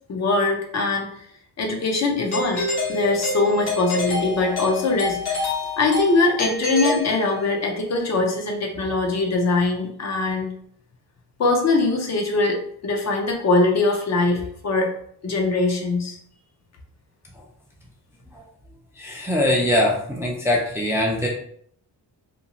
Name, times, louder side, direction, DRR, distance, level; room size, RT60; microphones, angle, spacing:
voice 1, 0.1-1.1 1.6-5.5 5.8-10.5 11.4-14.9 15.2-16.2, left 3 dB, 40° left, 1 dB, 0.5 m, -22 dB
Doorbell, 2.3-7.7, left 2 dB, 65° left, 1.1 m, -27 dB
voice 2, 19.0-21.3, left 1 dB, 5° right, -3 dB, 0.3 m, -22 dB
2.5 x 2.3 x 2.9 m, 0.64 s
wide cardioid pair, 150°, 42 cm